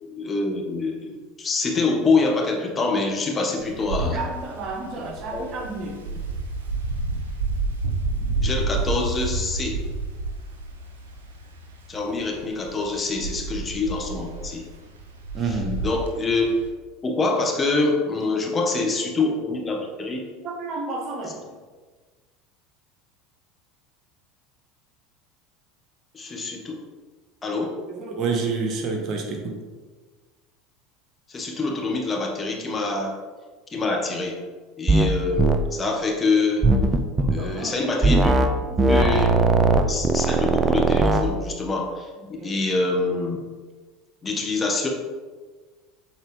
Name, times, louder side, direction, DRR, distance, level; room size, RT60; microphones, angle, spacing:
voice 1, 0.0-4.2 5.3-5.5 8.4-9.8 11.9-14.7 15.4-16.5 17.0-20.2 26.1-26.8 27.4-27.8 31.3-33.2 33.7-34.4 34.8-36.7 37.3-38.4 38.7-39.3 39.9-42.1 42.4-43.4 44.2-44.9, left 3 dB, 25° left, 0 dB, 1.3 m, -25 dB
Wind, 3.6-16.7, right 3 dB, 85° right, 0.9 m, -30 dB
voice 2, 4.0-6.0 15.3-15.9 18.8-18.9 20.4-21.4 27.9-29.6 37.2-37.8 42.2-42.5, right 3 dB, 50° right, 3 dB, 1.1 m, -30 dB
sound 1, 34.9-35.1 35.4-35.6 36.6-37.4 38.0-38.5 38.8-41.2, right 2 dB, 20° right, 0.6 m, -19 dB
7.1 x 4.2 x 3.3 m, 1.4 s
hypercardioid pair, 80°, 0 cm